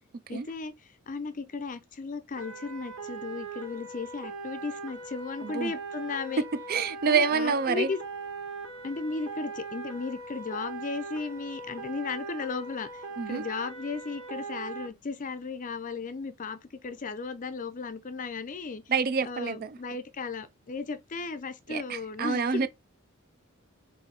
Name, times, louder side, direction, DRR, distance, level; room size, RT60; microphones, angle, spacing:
voice 1, 0.3-6.4 7.0-8.0 8.8-13.0 13.3-18.8 19.2-22.7, left 4 dB, 40° left, 0.5 m, -35 dB
sound 1, 2.4-14.9, right 3 dB, 90° right, 1.7 m, -40 dB
voice 2, 5.4-5.7 6.7-7.9 13.2-13.4 18.9-19.8 21.7-22.7, right 5 dB, 45° right, 0.4 m, -27 dB
4.2 x 2.7 x 3.9 m
head